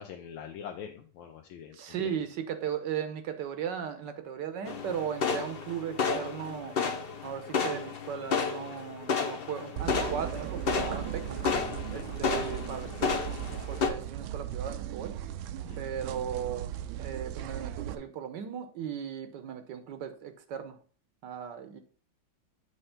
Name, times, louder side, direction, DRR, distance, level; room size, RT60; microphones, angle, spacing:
voice 1, 0.0-2.2 11.9-12.1 15.7-15.8, left 8 dB, 85° left, 1.5 m, -44 dB
voice 2, 1.7-6.8 7.2-11.4 11.9-13.2 13.7-15.2 15.8-16.7 17.0-20.8 21.2-21.8, right 8 dB, 70° right, 1.3 m, -37 dB
sound 1, 4.6-13.9, left 5 dB, 60° left, 0.6 m, -32 dB
sound 2, 9.8-18.0, right 11 dB, 85° right, 1.4 m, -37 dB
7.8 x 3.2 x 5.7 m
omnidirectional pair, 2.1 m